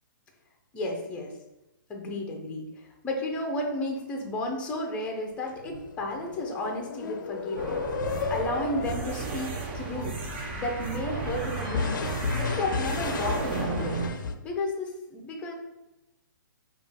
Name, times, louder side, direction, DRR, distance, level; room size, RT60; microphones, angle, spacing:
voice 1, 0.7-1.3 1.9-7.9 8.3-10.1 10.5-12.0 12.4-14.0 14.4-15.5, left 1 dB, 10° left, 1 dB, 0.6 m, -33 dB
sound 1, 5.6-14.3, left 5 dB, 60° left, 0.5 m, -34 dB
sound 2, 7.5-14.1, right 3 dB, 30° right, 0.6 m, -33 dB
5.0 x 2.4 x 3.4 m, 0.97 s
hypercardioid pair, 160°, 11 cm